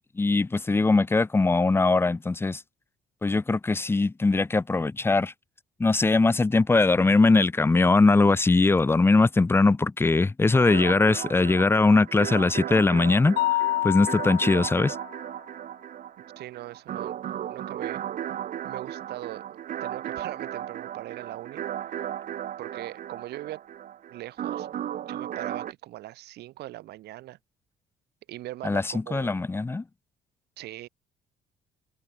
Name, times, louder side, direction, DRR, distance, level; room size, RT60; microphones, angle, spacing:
voice 1, 0.2-2.6 3.2-5.3 5.8-13.4 13.8-15.0 28.6-29.8, left 3 dB, 15° left, 0.7 m, -21 dB
sound 1, 10.5-25.7, right 10 dB, 50° right, 1.1 m, -35 dB
Mallet percussion, 13.4-15.1, left 16 dB, 65° left, 0.5 m, -28 dB
voice 2, 16.4-17.2 17.5-18.0 18.6-19.4 19.8-21.6 22.6-23.6 24.1-24.7 25.1-27.4 28.3-29.4 30.6-30.9, right 15 dB, 75° right, 2.3 m, -40 dB
cardioid pair, 110°, 17 cm